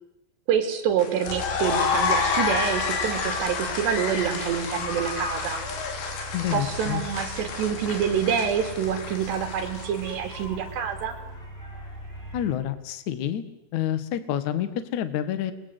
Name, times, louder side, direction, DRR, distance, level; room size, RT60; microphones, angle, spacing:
voice 1, 0.5-5.6 6.5-11.2, right 8 dB, 75° right, 6 dB, 4.9 m, -27 dB
sound 1, 1.0-10.3, left 5 dB, 80° left, 5.3 m, -29 dB
sound 2, 1.2-12.5, right 1 dB, 15° left, 6.4 m, -40 dB
voice 2, 6.3-7.0 12.3-13.4 13.7-15.5, left 11 dB, 55° left, 11 dB, 2.4 m, -28 dB
29.5 x 23.0 x 8.1 m, 0.89 s
omnidirectional pair, 4.9 m